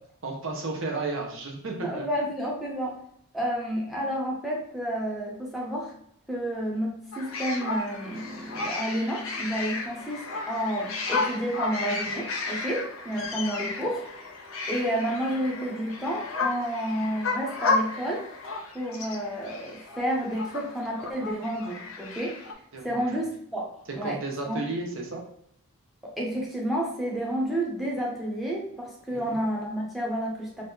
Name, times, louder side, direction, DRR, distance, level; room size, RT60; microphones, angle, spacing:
voice 1, 0.2-2.1 22.7-23.2 24.0-25.2 29.1-29.4, right 3 dB, 60° right, 0 dB, 0.9 m, -33 dB
voice 2, 1.8-2.9 3.3-5.9 6.3-14.0 14.7-18.2 18.7-22.3 22.8-24.2 24.5-24.7 26.2-30.6, equal, ahead, -3 dB, 0.7 m, -30 dB
sound 1, 7.1-22.5, left 3 dB, 65° left, 0.6 m, -33 dB
3.0 x 2.6 x 3.6 m, 0.71 s
head